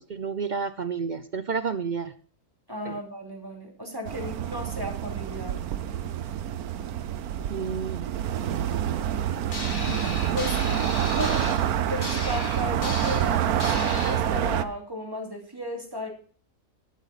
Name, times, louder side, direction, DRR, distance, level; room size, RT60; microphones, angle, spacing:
voice 1, 0.0-2.1 2.8-3.0 7.5-8.1, right 5 dB, 55° right, 12 dB, 0.5 m, -30 dB
voice 2, 2.7-5.6 9.8-10.1 10.3-16.1, equal, 15° right, 2 dB, 2.9 m, -35 dB
sound 1, 4.0-14.6, right 10 dB, 75° right, 1.2 m, -27 dB
sound 2, 9.5-14.2, left 3 dB, 60° left, 2.8 m, -36 dB
11.5 x 11.5 x 4.1 m, 0.42 s
omnidirectional pair, 1.6 m